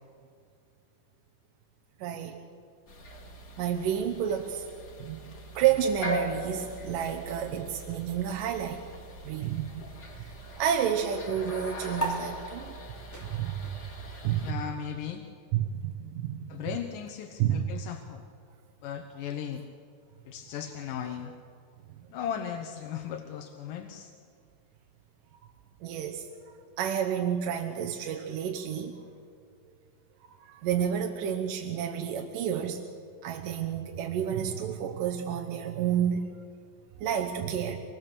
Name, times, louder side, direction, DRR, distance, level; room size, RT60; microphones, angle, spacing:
voice 1, 2.0-2.4 3.6-4.6 5.0-8.8 9.2-9.7 10.2-10.3 10.6-12.8 13.2-13.5 14.2-14.6 15.5-16.6 17.4-17.7 25.8-26.3 26.8-29.0 30.3-32.8 33.2-36.3 37.0-37.8, right 9 dB, 70° right, 2 dB, 2.3 m, -30 dB
sound 1, 2.9-14.5, equal, 35° left, 1.8 m, -41 dB
sound 2, 12.0-18.8, right 1 dB, 5° left, 3.0 m, -41 dB
voice 2, 14.4-15.2 16.5-18.2 18.8-19.6 20.3-21.3 22.1-24.1, left 8 dB, 70° left, 5 dB, 2.3 m, -36 dB
27.0 x 20.5 x 6.8 m, 2.3 s
omnidirectional pair, 4.8 m